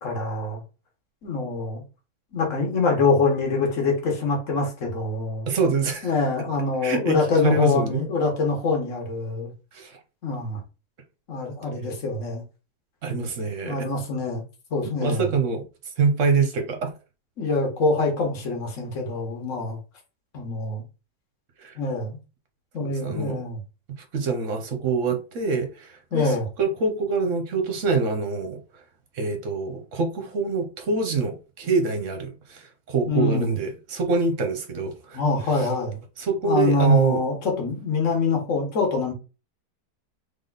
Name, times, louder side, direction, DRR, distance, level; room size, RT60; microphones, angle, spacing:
voice 1, 0.0-0.6 1.2-1.8 2.3-5.5 6.0-9.5 10.2-10.6 11.3-12.4 13.6-14.4 14.7-15.2 17.4-19.8 20.3-20.8 21.7-22.2 22.7-23.6 26.1-26.5 33.1-33.5 35.1-36.0 36.4-39.1, left 3 dB, 50° left, 1.7 m, -25 dB
voice 2, 5.5-6.1 6.8-8.0 9.7-10.0 13.0-13.8 15.0-15.6 16.0-16.9 21.6-21.7 22.8-23.4 24.1-28.6 29.1-35.2 35.5-35.7 36.2-37.3, right 4 dB, 50° right, 1.2 m, -25 dB
3.7 x 3.5 x 4.0 m
omnidirectional pair, 1.9 m